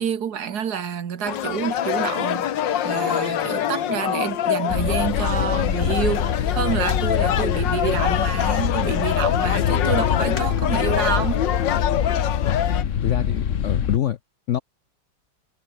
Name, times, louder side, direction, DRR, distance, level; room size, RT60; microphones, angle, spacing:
voice 1, 0.0-11.4, right 8 dB, 60° right, 1.8 m, -28 dB
sound 1, 1.3-12.8, left 10 dB, 85° left, 1.8 m, -25 dB
sound 2, 4.7-14.0, left 8 dB, 50° left, 1.2 m, -24 dB
voice 2, 9.5-9.9 12.5-12.6 13.0-14.2 14.5-14.6, left 11 dB, 65° left, 0.7 m, -26 dB
omnidirectional pair, 1.9 m